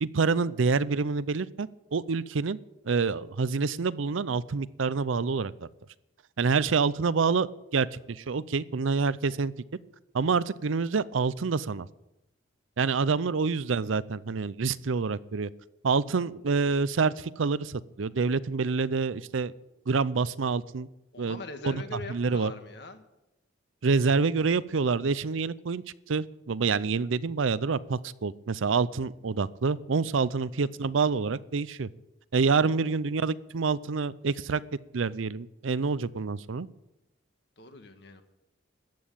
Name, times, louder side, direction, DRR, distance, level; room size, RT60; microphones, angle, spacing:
voice 1, 0.0-2.6 2.8-5.5 6.4-9.5 10.1-11.9 12.8-15.5 15.8-19.5 19.9-20.9 21.2-22.5 23.8-31.9 32.3-34.6 34.9-36.7, right 4 dB, 85° right, 18 dB, 0.6 m, -27 dB
voice 2, 21.1-23.0 30.6-30.7 37.6-38.2, left 3 dB, 60° left, 7 dB, 1.6 m, -42 dB
14.0 x 9.3 x 8.7 m, 0.92 s
head